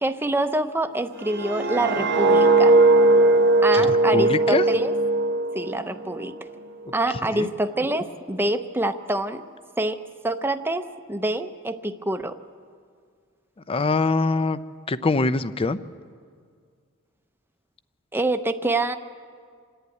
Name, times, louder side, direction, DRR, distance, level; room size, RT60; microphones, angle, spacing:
voice 1, 0.0-2.8 3.6-4.9 5.5-6.4 6.9-9.4 9.8-12.4 18.1-19.0, right 1 dB, 10° right, 8 dB, 0.7 m, -26 dB
sound 1, 1.2-6.3 6.6-6.9, right 2 dB, 55° right, 1.0 m, -19 dB
voice 2, 3.7-4.6 7.3-7.5 13.7-14.6 14.9-15.8, left 3 dB, 25° left, 14 dB, 0.5 m, -23 dB
27.0 x 11.5 x 9.3 m, 2.1 s
head